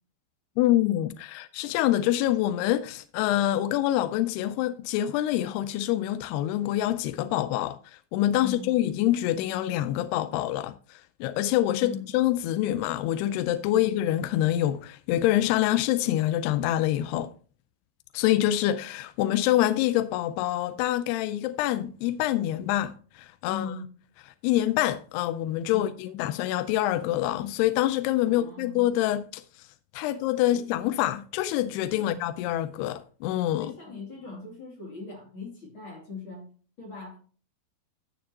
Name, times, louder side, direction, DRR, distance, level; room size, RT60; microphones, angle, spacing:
voice 1, 0.6-17.3 18.1-23.7 24.4-29.4 29.9-33.8, left 13 dB, 85° left, 2.6 m, -26 dB
voice 2, 8.4-8.7 11.8-12.1 23.5-23.8 25.7-25.9 28.2-28.8 30.4-30.9 31.9-32.1 33.6-36.5 36.8-37.2, left 4 dB, 35° left, 2.9 m, -40 dB
14.0 x 6.8 x 2.8 m
omnidirectional pair, 4.7 m